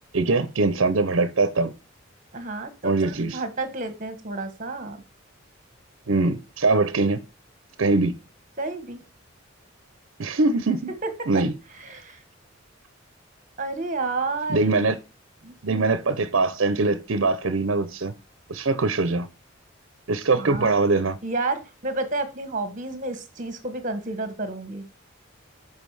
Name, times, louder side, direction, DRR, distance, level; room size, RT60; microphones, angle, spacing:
voice 1, 0.1-1.7 2.8-3.4 6.1-7.2 7.8-8.1 10.2-10.9 11.3-11.5 14.5-15.0 15.6-18.1 18.5-19.3 20.1-21.2, right 3 dB, 70° right, 12 dB, 0.7 m, -22 dB
voice 2, 2.3-5.0 8.6-9.0 11.0-11.3 11.7-12.2 13.6-14.7 15.4-15.9 20.4-20.8 21.2-24.9, right 3 dB, 40° right, 10 dB, 1.4 m, -31 dB
7.4 x 4.8 x 4.8 m, 0.29 s
head